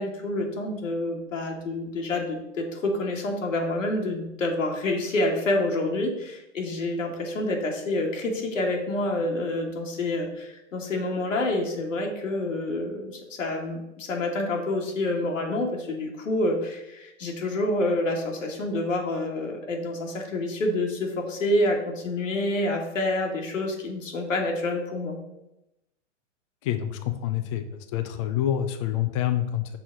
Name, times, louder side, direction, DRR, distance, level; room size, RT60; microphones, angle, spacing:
voice 1, 0.0-25.2, left 1 dB, 85° left, 1 dB, 2.0 m, -28 dB
voice 2, 26.6-27.6 27.9-29.8, left 11 dB, 25° left, 8 dB, 0.4 m, -27 dB
6.1 x 4.1 x 6.0 m, 0.91 s
hypercardioid pair, 140°, 37 cm